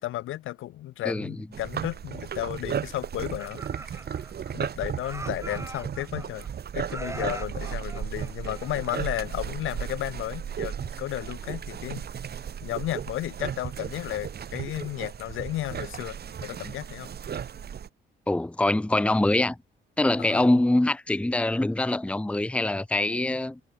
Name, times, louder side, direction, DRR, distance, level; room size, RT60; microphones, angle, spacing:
voice 1, 0.0-3.6 3.9-4.0 4.5-6.5 6.7-12.1 12.6-17.1 20.2-20.6, left 15 dB, 85° left, 3.7 m, -33 dB
sound 1, 1.5-17.9, right 8 dB, 55° right, 3.1 m, -35 dB
Laughter, 3.0-4.7 5.0-6.5 6.9-9.1, right 2 dB, 15° right, 1.4 m, -41 dB
voice 2, 18.3-19.6 20.0-23.6, left 2 dB, 5° left, 0.8 m, -24 dB
cardioid pair, 90°, 20 cm